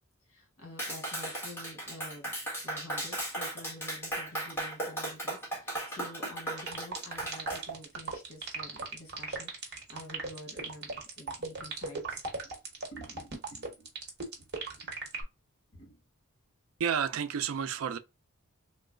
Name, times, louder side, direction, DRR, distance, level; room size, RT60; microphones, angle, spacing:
voice 1, 0.3-2.3 2.6-12.6 12.9-13.9 14.3-14.5 14.8-14.9 15.7-16.0, left 1 dB, 70° left, 1.4 m, -49 dB
Clapping, 0.8-7.6, right 1 dB, 10° left, 1.3 m, -36 dB
sound 1, 6.6-15.2, right 4 dB, 50° right, 1.0 m, -37 dB
voice 2, 16.8-18.0, right 7 dB, 70° right, 0.4 m, -30 dB
3.0 x 2.1 x 3.6 m
head